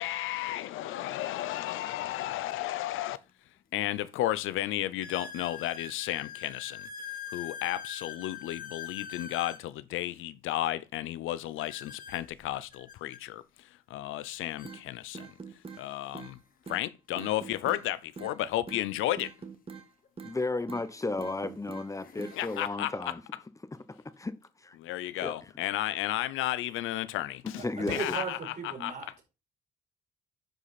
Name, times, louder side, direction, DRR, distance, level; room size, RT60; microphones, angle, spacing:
voice 1, 0.0-3.2 3.7-6.9 7.3-15.3 15.8-16.4 16.7-19.3 22.4-23.2 24.8-29.0, left 14 dB, 90° left, 0.7 m, -33 dB
sound 1, 3.3-3.4 4.0-4.1 5.0-9.7 11.6-13.2 14.2-14.3 14.6-14.8 15.6-15.7 17.9-18.0 20.0-20.1 20.9-21.2 21.7-22.7, left 8 dB, 45° left, 1.2 m, -44 dB
sound 2, 14.6-14.8 15.1-15.8 16.1-16.3 16.7-16.8 17.2-17.8 18.2-18.4 18.7-18.8 19.2-19.9 20.2-20.4 20.7-20.9 21.2-21.9 22.2-22.4, right 5 dB, 30° right, 1.6 m, -43 dB
voice 2, 20.2-23.2 23.9-24.3 24.6-24.8 25.2-25.3 27.6-28.2, left 2 dB, 15° left, 0.9 m, -34 dB
voice 3, 27.6-29.2, right 6 dB, 50° right, 4.6 m, -37 dB
11.0 x 5.0 x 4.2 m
cardioid pair, 90°, 20 cm